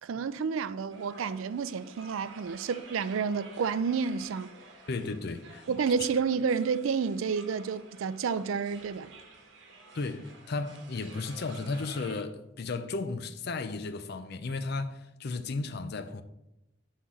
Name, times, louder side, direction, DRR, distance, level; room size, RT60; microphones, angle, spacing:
voice 1, 0.0-4.5 5.7-9.1, right 6 dB, 70° right, 0.4 m, -30 dB
sound 1, 0.9-12.2, right 3 dB, 55° right, 1.2 m, -51 dB
voice 2, 4.9-5.6 6.0-6.1 9.9-16.2, left 3 dB, 50° left, 0.5 m, -34 dB
5.8 x 4.1 x 6.2 m
head